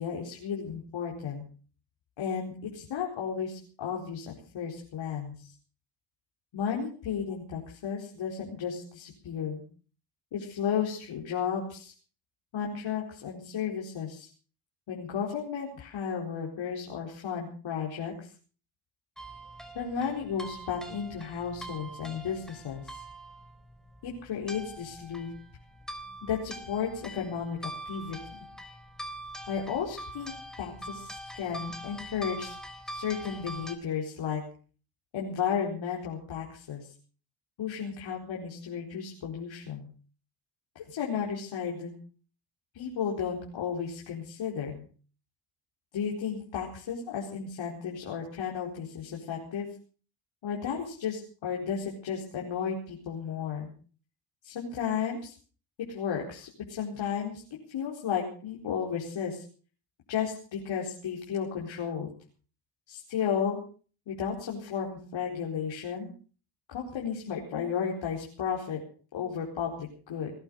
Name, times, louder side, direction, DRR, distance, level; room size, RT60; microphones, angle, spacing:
voice 1, 0.0-1.4 2.2-5.5 6.5-9.6 10.3-11.9 12.5-14.3 14.9-18.3 19.7-23.0 24.0-25.3 26.2-28.4 29.5-30.3 30.6-32.6 32.8-34.4 35.1-36.9 37.6-39.9 40.7-41.9 42.7-44.8 45.9-49.7 50.4-53.7 54.4-55.3 55.9-57.4 57.7-59.4 60.1-62.1 62.9-63.6 64.1-66.1 66.7-68.8 69.1-70.3, left 7 dB, 70° left, -2 dB, 4.5 m, -33 dB
sound 1, 19.2-33.8, right 1 dB, ahead, 3.7 m, -43 dB
20.0 x 11.5 x 6.4 m, 0.41 s
cardioid pair, 80°, 47 cm